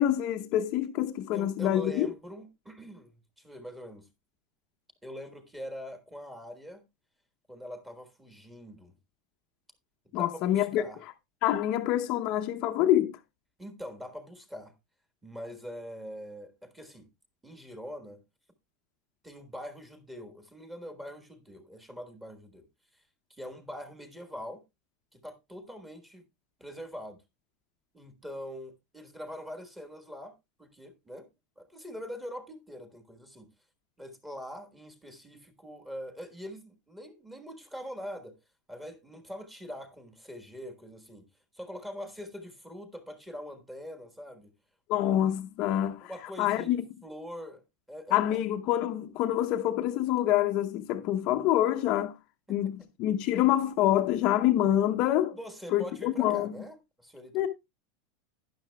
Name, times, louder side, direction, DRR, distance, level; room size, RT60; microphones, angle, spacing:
voice 1, 0.0-2.1 10.1-10.8 11.4-13.2 44.9-46.1 46.4-46.8 48.1-52.2 52.5-55.4 55.7-56.5 57.3-57.5, left 12 dB, 40° left, 0.7 m, -26 dB
voice 2, 1.3-3.1 3.4-4.1 5.0-6.8 7.5-8.9 10.0-11.0 13.6-14.7 15.2-17.1 17.4-18.2 19.2-22.6 22.9-23.0 23.3-24.6 25.1-26.3 26.6-27.2 27.9-30.3 30.6-31.3 31.6-33.5 34.0-38.3 38.7-41.2 41.5-44.5 44.9-45.2 46.0-47.6 47.9-48.4 55.3-57.5, equal, 5° right, 1.4 m, -43 dB
11.5 x 10.5 x 2.2 m
supercardioid pair, 160°, 2 cm